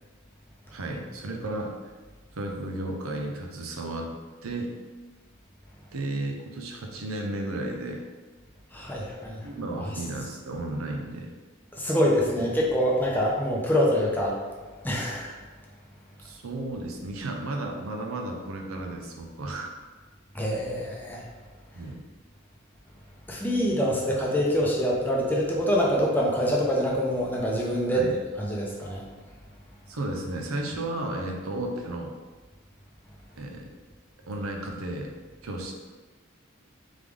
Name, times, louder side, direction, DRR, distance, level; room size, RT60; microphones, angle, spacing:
voice 1, 0.7-1.9 2.3-4.1 4.4-4.7 5.9-8.0 9.4-11.3 16.2-19.7 21.7-22.0 27.9-28.2 29.9-32.1 33.4-33.7 34.3-35.1 35.4-35.7, right 2 dB, 85° right, 1 dB, 0.7 m, -33 dB
voice 2, 8.7-9.4 9.8-9.9 11.7-14.4 14.8-15.4 20.3-21.2 23.3-28.0 28.4-29.0, equal, 10° left, -3 dB, 0.6 m, -25 dB
3.6 x 3.4 x 3.4 m, 1.3 s
head